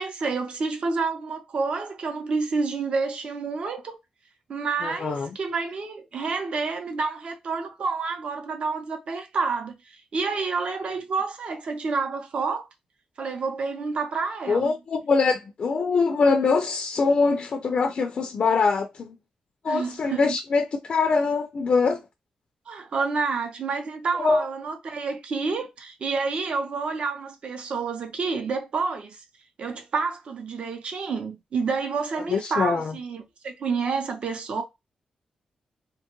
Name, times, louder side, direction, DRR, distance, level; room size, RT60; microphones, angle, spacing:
voice 1, 0.0-4.0 4.5-12.7 13.2-14.7 19.7-20.2 22.7-29.2 29.6-34.6, right 4 dB, 55° right, 0.7 m, -29 dB
voice 2, 4.8-5.3 14.5-19.1 19.6-22.0 24.2-24.4 32.3-32.9, left 4 dB, 50° left, 0.3 m, -23 dB
2.9 x 2.2 x 2.9 m
wide cardioid pair, 150°, 2 cm